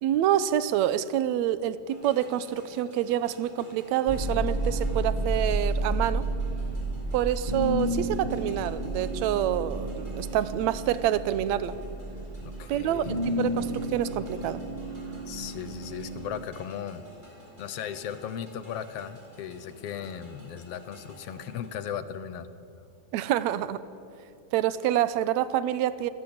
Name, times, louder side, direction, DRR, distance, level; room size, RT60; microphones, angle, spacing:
voice 1, 0.0-6.2 7.1-11.7 12.7-14.6 23.1-23.8 24.5-26.1, right 11 dB, 75° right, 15 dB, 2.0 m, -27 dB
sound 1, 1.9-21.7, equal, 15° right, 5.3 m, -52 dB
sound 2, 4.1-16.4, right 1 dB, 45° right, 0.5 m, -31 dB
voice 2, 12.4-13.2 15.3-17.0 17.6-22.5, left 8 dB, 65° left, 12 dB, 1.7 m, -37 dB
28.0 x 17.0 x 8.8 m, 2.7 s
omnidirectional pair, 3.4 m